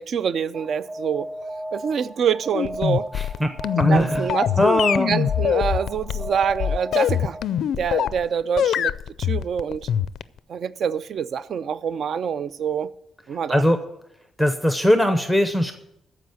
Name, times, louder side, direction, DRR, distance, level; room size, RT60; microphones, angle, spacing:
voice 1, 0.0-1.3 1.7-3.1 3.8-4.6 5.1-7.4 7.8-9.9 10.5-12.9 13.3-13.6, right 7 dB, 55° right, 0.4 m, -26 dB
Alarm, 0.5-7.6, equal, 25° right, 1.5 m, -35 dB
sound 1, 2.5-8.2 8.6-10.4, left 9 dB, 70° left, 0.4 m, -23 dB
voice 2, 3.1-3.5 3.8-4.3 4.6-5.1 13.5-13.8 14.4-15.7, equal, 5° right, 0.6 m, -20 dB
14.0 x 4.9 x 8.0 m
cardioid pair, 145°, 0 cm